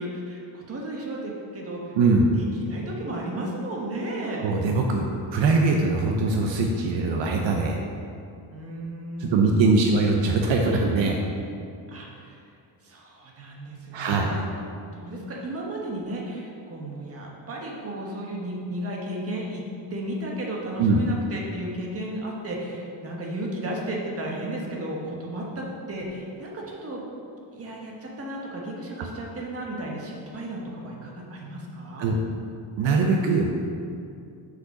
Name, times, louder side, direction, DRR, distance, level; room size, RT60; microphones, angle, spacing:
voice 1, 0.0-2.0 2.3-4.5 8.5-10.1 11.9-12.4 12.8-14.5 14.9-19.6 19.9-27.0 27.5-32.1, right 1 dB, 30° right, -2 dB, 1.2 m, -34 dB
voice 2, 2.0-2.3 4.4-7.8 9.2-11.2 13.9-14.3 20.8-21.0 32.0-32.2 32.8-33.5, right 3 dB, 70° right, 1 dB, 0.8 m, -22 dB
6.5 x 5.2 x 5.7 m, 2.5 s
cardioid pair, 160°, 47 cm